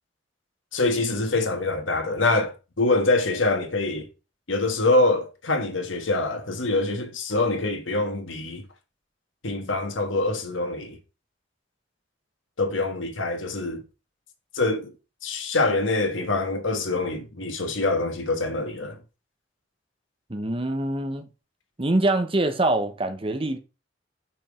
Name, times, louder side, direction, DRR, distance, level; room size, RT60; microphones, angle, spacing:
voice 1, 0.7-4.1 4.5-8.6 9.4-11.0 12.6-13.8 14.5-14.9 15.2-19.0, left 2 dB, 90° left, 1.6 m, -25 dB
voice 2, 20.3-21.2 21.8-23.6, right 2 dB, 30° right, 1.0 m, -24 dB
5.9 x 5.3 x 5.1 m
head